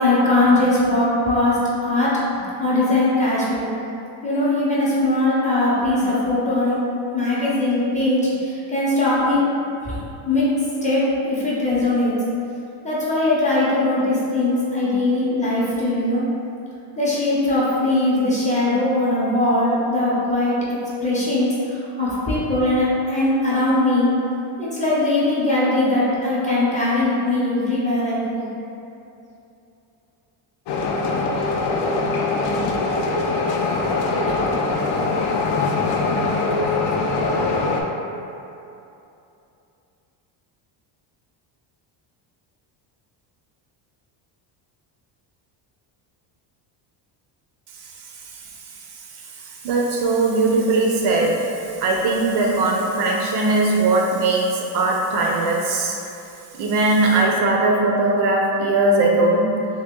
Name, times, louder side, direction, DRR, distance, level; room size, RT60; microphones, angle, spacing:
voice 1, 0.0-2.2 2.6-3.8 4.2-6.8 7.1-9.4 9.8-10.0 10.3-10.5 10.8-12.2 12.8-16.2 17.0-20.6 21.0-24.1 24.6-28.5, left 2 dB, 15° left, -8 dB, 0.5 m, -20 dB
sound 1, 30.7-37.8, left 3 dB, 60° left, 0.5 m, -22 dB
voice 2, 49.6-51.3 51.8-54.5 54.7-55.9 56.6-59.4, right 2 dB, 55° right, -1 dB, 0.5 m, -19 dB
2.9 x 2.9 x 3.5 m, 2.8 s
cardioid pair, 150°, 49 cm